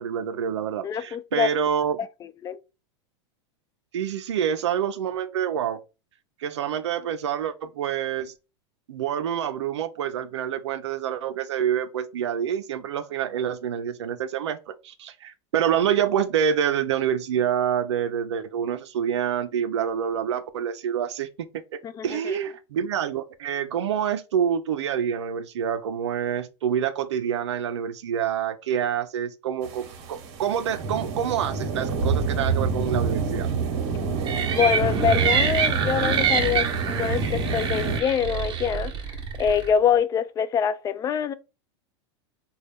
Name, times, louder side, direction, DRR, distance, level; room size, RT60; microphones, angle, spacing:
voice 1, 0.0-2.0 3.9-5.8 6.4-8.3 8.9-33.5, right 9 dB, 85° right, 0.4 m, -27 dB
voice 2, 0.8-1.5 2.0-2.6 21.8-22.4 34.4-41.3, left 7 dB, 25° left, 0.3 m, -25 dB
sound 1, 29.6-38.0, right 5 dB, 55° right, 1.0 m, -27 dB
sound 2, 34.3-39.7, right 6 dB, 35° right, 0.9 m, -26 dB
4.0 x 2.2 x 3.3 m
hypercardioid pair, 110°, 14 cm